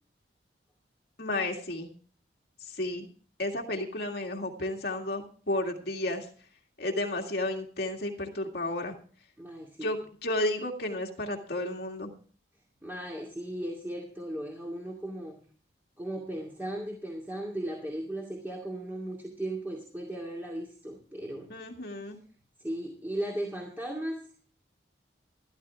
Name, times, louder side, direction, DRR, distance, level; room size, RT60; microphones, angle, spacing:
voice 1, 1.2-1.9 2.6-3.1 3.4-6.3 6.8-9.0 9.8-12.1 21.5-22.2, left 1 dB, 60° left, 2 dB, 2.1 m, -32 dB
voice 2, 9.4-9.9 12.8-15.4 16.0-21.5 22.6-24.2, right 1 dB, 10° right, -2 dB, 2.3 m, -36 dB
13.5 x 13.5 x 3.6 m, 0.43 s
head